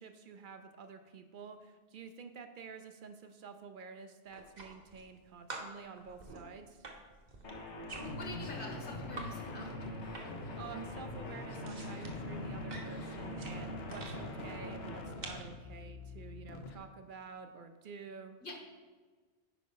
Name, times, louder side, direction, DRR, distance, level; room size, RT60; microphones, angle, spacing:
voice 1, 0.0-6.8 10.6-18.4, right 5 dB, 60° right, 8 dB, 0.6 m, -49 dB
sound 1, 4.3-5.2 5.5-9.3 9.6-10.5 10.8-14.2 14.8-15.5, right 3 dB, 45° right, 0.9 m, -48 dB
sound 2, 7.4-15.1, left 1 dB, 85° left, 1.3 m, -44 dB
voice 2, 8.0-9.7 18.4-18.5, left 2 dB, 50° left, 0 dB, 1.4 m, -46 dB
sound 3, 8.1-16.8, left 3 dB, 65° left, 0.9 m, -47 dB
9.1 x 5.1 x 3.8 m, 1.4 s
omnidirectional pair, 1.2 m